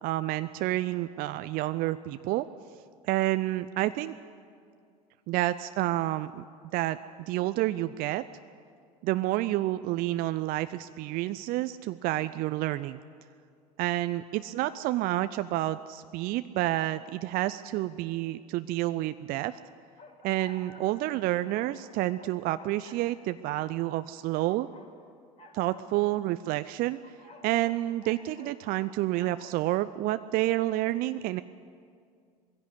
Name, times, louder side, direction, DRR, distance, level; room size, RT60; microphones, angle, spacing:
voice 1, 0.0-2.5 3.0-4.2 5.3-6.4 6.7-7.0 7.3-8.2 9.0-13.0 13.8-19.6 20.2-24.7 25.5-27.0 27.4-31.4, right 16 dB, 45° right, 12 dB, 0.6 m, -29 dB
sound 1, 20.0-21.0 21.5-21.7 22.2-23.0 24.1-24.9 25.4-25.9 26.7-28.9 29.1-29.6, left 2 dB, 35° left, 4.7 m, -52 dB
21.0 x 16.0 x 8.3 m, 2.2 s
figure-of-eight pair, 70°, 20 cm